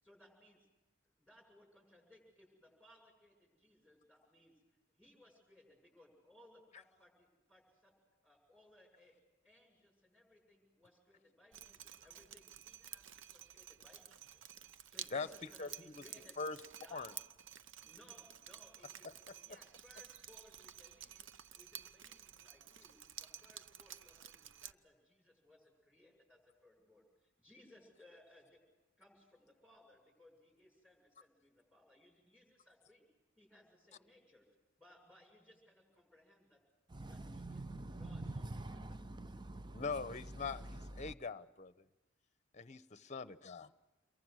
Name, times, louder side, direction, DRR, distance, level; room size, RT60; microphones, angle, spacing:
voice 1, 0.0-0.7 1.2-4.5 5.0-7.9 8.2-9.2 9.4-14.4 14.9-16.4 16.8-17.1 17.8-19.1 19.3-28.6 29.0-33.1 33.4-34.5 34.8-36.6 37.1-37.6 38.0-38.8, left 1 dB, 5° right, 7.1 m, -65 dB
Drip, 11.5-24.7, right 10 dB, 65° right, 0.7 m, -52 dB
voice 2, 15.6-16.0 16.4-16.6 16.9-17.1 19.0-19.1 39.7-41.8 42.5-43.7, left 4 dB, 35° left, 0.9 m, -42 dB
voice 3, 36.9-41.1, right 2 dB, 25° right, 0.7 m, -46 dB
28.5 x 22.5 x 6.5 m
head